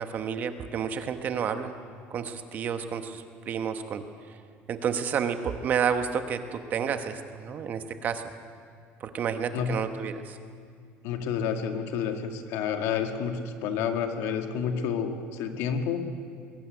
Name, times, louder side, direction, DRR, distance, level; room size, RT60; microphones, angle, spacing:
voice 1, 0.0-1.8 2.1-4.0 4.7-8.2 9.0-10.4, right 7 dB, 35° right, 8 dB, 1.1 m, -30 dB
voice 2, 11.0-16.0, left 7 dB, 70° left, 5 dB, 1.9 m, -29 dB
21.5 x 13.5 x 9.5 m, 2.2 s
cardioid pair, 165°, 5 cm